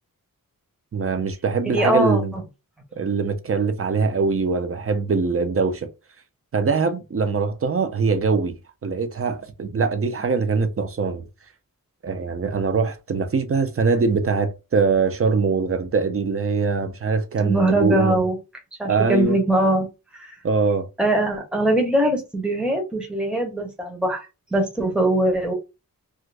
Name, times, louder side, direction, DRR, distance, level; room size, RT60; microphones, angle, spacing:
voice 1, 0.9-2.4 3.0-5.9 6.5-11.2 12.0-18.2 18.8-19.4 20.4-20.9, right 4 dB, 40° right, 0.6 m, -22 dB
voice 2, 1.7-2.2 17.4-18.4 18.8-19.9 20.1-20.3 21.0-24.3 24.5-25.5, right 1 dB, 5° right, 0.7 m, -21 dB
2.5 x 2.5 x 3.2 m
wide cardioid pair, 110°, 35 cm